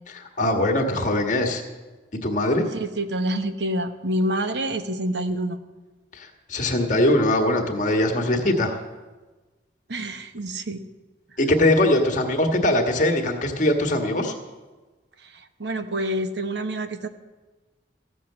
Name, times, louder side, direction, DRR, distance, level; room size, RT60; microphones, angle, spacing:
voice 1, 0.1-1.6 2.2-2.7 6.2-8.7 11.4-14.3, left 1 dB, 45° left, 3 dB, 1.5 m, -21 dB
voice 2, 2.7-5.6 9.9-10.8 15.6-17.1, right 1 dB, 75° right, 9 dB, 0.9 m, -27 dB
15.0 x 6.4 x 8.5 m, 1.2 s
head